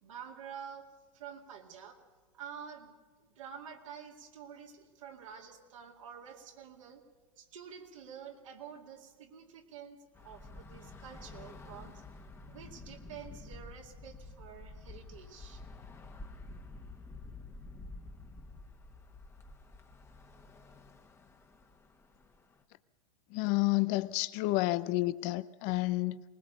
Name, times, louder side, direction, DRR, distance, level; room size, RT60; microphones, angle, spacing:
voice 1, 0.0-2.0 2.3-2.9 3.2-7.0 7.4-12.0 12.5-15.6, right 7 dB, 70° right, 2.3 m, -49 dB
Bus / Traffic noise roadway noise, 10.1-22.6, left 3 dB, 15° left, 1.4 m, -50 dB
voice 2, 23.3-26.2, left 19 dB, 45° left, 0.6 m, -30 dB
20.0 x 19.5 x 6.7 m
hypercardioid pair, 95°, 17 cm